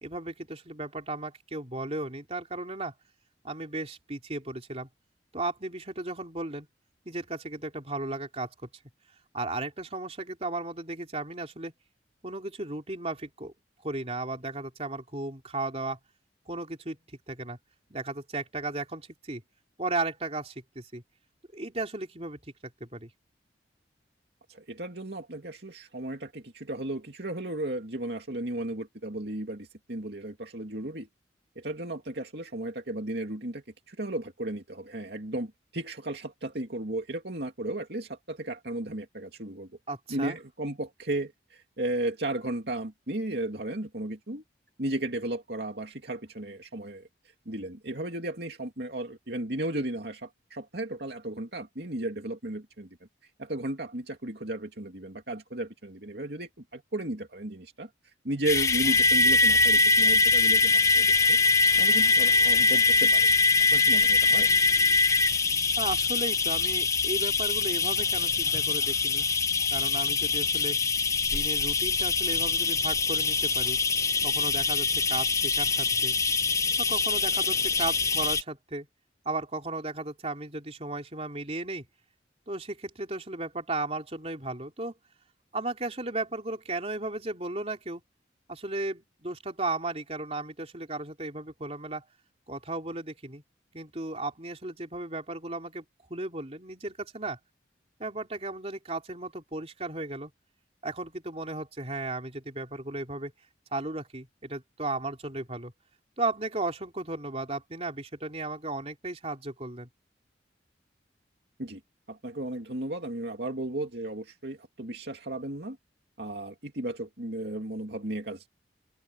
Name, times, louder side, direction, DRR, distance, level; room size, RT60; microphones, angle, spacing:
voice 1, 0.0-3.0 3.4-4.9 5.3-6.7 7.1-8.7 9.3-11.7 12.2-13.5 13.8-16.0 16.5-17.0 17.3-17.6 17.9-19.4 19.8-21.0 21.5-23.1 39.9-40.4 65.8-69.3 69.7-70.8 71.3-73.8 74.2-76.2 76.8-78.9 79.3-81.9 82.5-84.9 85.5-88.0 88.5-92.0 92.5-93.4 93.7-95.8 96.1-97.4 98.0-100.3 100.8-103.3 103.7-105.7 106.2-109.9, right 2 dB, 35° right, 3.4 m, -35 dB
voice 2, 24.5-31.1 31.6-39.7 40.1-44.4 44.8-47.1 47.5-52.9 53.4-57.9 58.2-61.4 61.8-63.3 63.7-64.5 111.6-111.8 112.1-115.8 116.2-118.5, right 1 dB, 60° right, 2.6 m, -34 dB
sound 1, 58.5-78.4, left 3 dB, 15° left, 0.8 m, -23 dB
open air
head